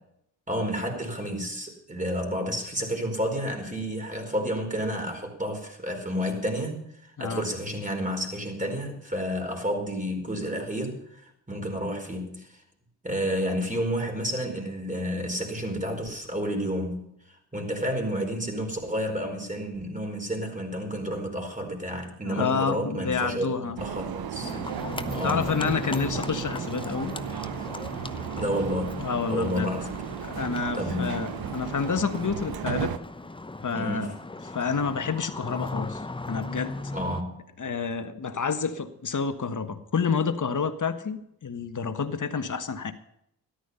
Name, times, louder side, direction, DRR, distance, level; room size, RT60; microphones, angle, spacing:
voice 1, 0.5-12.6 13.0-17.0 17.5-24.5 25.1-25.5 28.4-29.9 30.7-31.2 32.2-32.4 33.7-34.1 36.9-37.4, equal, 15° right, 3 dB, 4.6 m, -30 dB
voice 2, 22.2-23.8 25.2-27.2 29.0-29.7 30.2-32.9 33.6-34.1 34.4-36.8 37.6-42.9, left 5 dB, 40° left, 10 dB, 1.4 m, -29 dB
sound 1, 23.8-33.0, right 10 dB, 50° right, 0.8 m, -35 dB
Livestock farm animals working animals, 24.4-37.2, left 2 dB, 10° left, 0.8 m, -37 dB
13.5 x 11.5 x 5.7 m, 0.76 s
hypercardioid pair, 40°, 49 cm